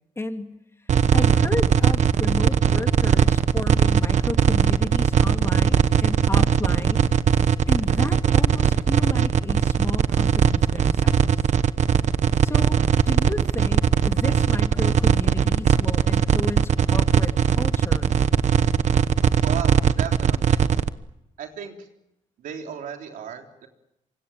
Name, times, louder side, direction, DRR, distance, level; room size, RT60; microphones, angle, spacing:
voice 1, 0.2-0.5 1.1-7.1 7.7-11.3 12.4-12.8 13.0-18.1, left 2 dB, 20° left, 5 dB, 2.8 m, -32 dB
sound 1, 0.9-20.9, right 8 dB, 60° right, 1.1 m, -19 dB
voice 2, 19.4-20.6 21.4-21.9 22.4-23.7, right 8 dB, 90° right, 3 dB, 3.7 m, -35 dB
26.5 x 25.0 x 7.4 m, 0.87 s
cardioid pair, 110°, 14 cm